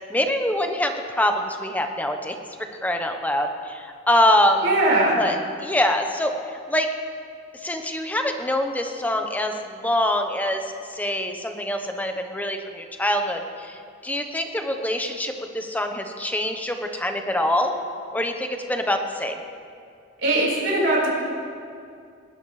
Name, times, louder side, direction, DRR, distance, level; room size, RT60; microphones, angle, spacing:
voice 1, 0.1-4.7 5.1-5.4 5.6-6.3 6.7-6.9 7.6-10.6 10.9-17.8 18.1-19.4, left 1 dB, 10° left, 4 dB, 1.0 m, -24 dB
voice 2, 4.6-5.2 20.2-21.1, right 2 dB, 65° right, -5 dB, 4.7 m, -20 dB
20.5 x 19.5 x 3.3 m, 2.3 s
head